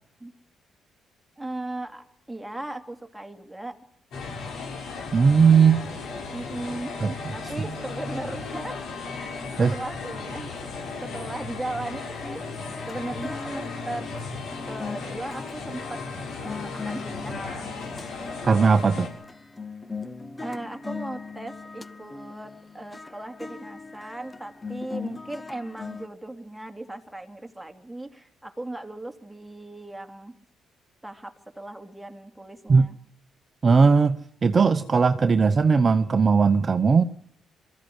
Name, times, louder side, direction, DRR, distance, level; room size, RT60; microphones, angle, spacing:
voice 1, 1.4-3.8 6.3-6.9 7.3-8.8 9.1-10.5 11.0-14.1 14.7-16.0 16.4-17.8 20.4-30.3 31.0-33.0, right 2 dB, 5° right, 4 dB, 3.1 m, -37 dB
sound 1, 4.1-19.1, left 4 dB, 70° left, 7.3 m, -35 dB
voice 2, 5.1-5.8 7.0-7.1 9.6-9.7 18.4-19.1 32.7-32.9 33.6-37.0, right 5 dB, 35° right, 10 dB, 0.9 m, -18 dB
sound 2, 12.2-26.1, left 4 dB, 20° left, 0.9 m, -40 dB
23.0 x 15.0 x 7.9 m, 0.71 s
cardioid pair, 90°, 0 cm